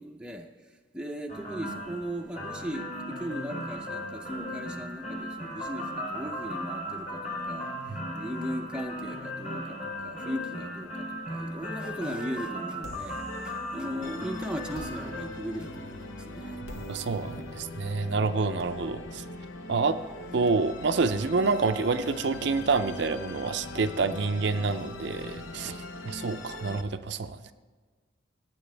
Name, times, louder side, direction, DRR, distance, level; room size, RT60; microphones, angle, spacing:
voice 1, 0.0-16.6, equal, 5° right, 2 dB, 0.6 m, -38 dB
sound 1, 1.3-15.2, equal, 35° left, 3.3 m, -37 dB
sound 2, 12.8-14.2 14.7-20.5, equal, 85° left, 1.5 m, -49 dB
Musical instrument, 14.0-26.8, left 2 dB, 65° left, 0.8 m, -41 dB
voice 2, 16.9-19.2 19.7-20.0 20.3-25.8 26.1-27.5, right 4 dB, 55° right, 9 dB, 0.5 m, -28 dB
17.0 x 9.0 x 3.4 m, 1.4 s
head